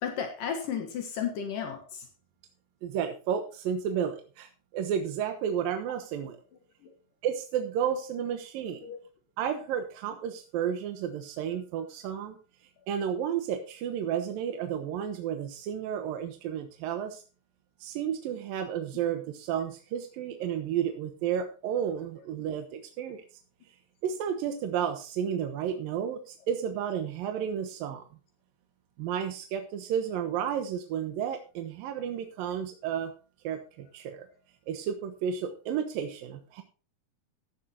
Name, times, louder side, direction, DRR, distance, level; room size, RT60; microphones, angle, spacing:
voice 1, 0.0-2.1 6.8-6.9 8.8-9.0, left 7 dB, 70° left, 4 dB, 3.0 m, -33 dB
voice 2, 2.8-6.4 7.2-8.8 9.4-12.4 12.9-17.2 17.8-23.2 24.0-28.0 29.0-33.1 33.4-34.2 34.7-36.6, right 8 dB, 80° right, 6 dB, 2.9 m, -32 dB
14.5 x 10.5 x 2.9 m, 0.36 s
omnidirectional pair, 4.0 m